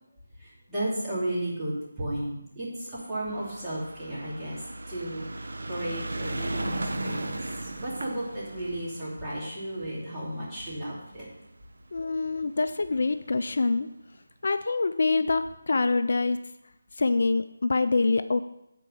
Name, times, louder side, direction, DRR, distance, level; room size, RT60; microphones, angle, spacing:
voice 1, 0.4-4.6 4.9-7.4 7.8-11.3, right 1 dB, 10° right, -10 dB, 2.8 m, -34 dB
sound 1, 3.2-11.7 12.6-12.7 12.9-13.0 13.2-13.3, right 2 dB, 75° right, 1.1 m, -36 dB
voice 2, 11.9-13.9 14.4-16.4 17.0-18.4, left 3 dB, 60° left, 11 dB, 0.4 m, -25 dB
9.2 x 4.6 x 6.4 m, 0.85 s
figure-of-eight pair, 165°, 0 cm